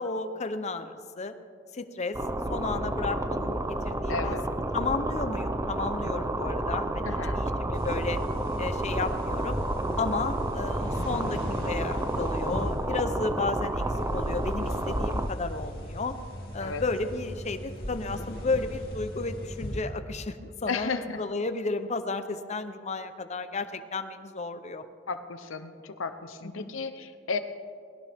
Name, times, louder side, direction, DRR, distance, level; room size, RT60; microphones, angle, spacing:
voice 1, 0.0-1.3 1.7-2.2 2.5-4.4 4.7-8.2 8.6-9.6 10.0-11.4 11.6-13.8 14.1-16.1 16.5-20.9 21.2-24.8 26.4-26.7, left 3 dB, 35° left, 9 dB, 0.8 m, -33 dB
sound 1, 2.1-15.3, right 1 dB, 15° right, 0.6 m, -30 dB
voice 2, 4.1-4.4 7.0-7.4 16.6-16.8 20.7-21.2 25.1-27.4, left 4 dB, 85° left, 10 dB, 0.8 m, -33 dB
sound 2, 7.7-19.8, equal, 50° left, 2.8 m, -38 dB
20.0 x 17.0 x 3.6 m, 2.3 s
head